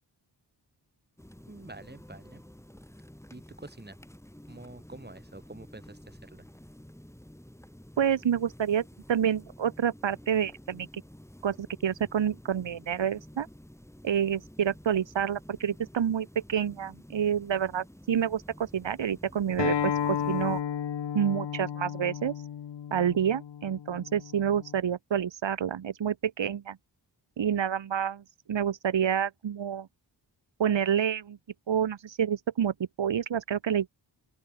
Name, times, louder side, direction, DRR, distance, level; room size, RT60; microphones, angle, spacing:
sound 1, 1.2-20.6, equal, 5° left, 2.9 m, -51 dB
voice 1, 1.5-2.4 3.3-4.0 4.5-6.5, right 2 dB, 20° right, 2.2 m, -47 dB
voice 2, 8.0-10.9 11.4-13.5 14.0-20.6 21.1-22.3 22.9-26.8 27.4-28.2 28.5-29.9 30.6-31.4 31.7-33.9, right 8 dB, 85° right, 0.9 m, -28 dB
Acoustic guitar, 19.6-24.8, left 9 dB, 70° left, 0.8 m, -33 dB
open air
wide cardioid pair, 55°, 44 cm